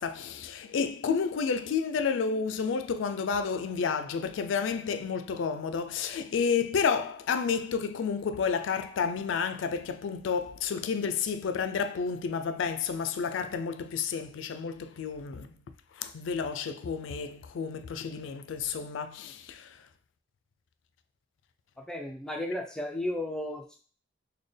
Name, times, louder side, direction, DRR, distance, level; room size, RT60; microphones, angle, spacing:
voice 1, 0.0-15.5 16.0-19.7, left 6 dB, 70° left, 0.3 m, -30 dB
voice 2, 21.8-23.8, left 1 dB, 5° left, 0.4 m, -34 dB
4.2 x 2.2 x 3.3 m
head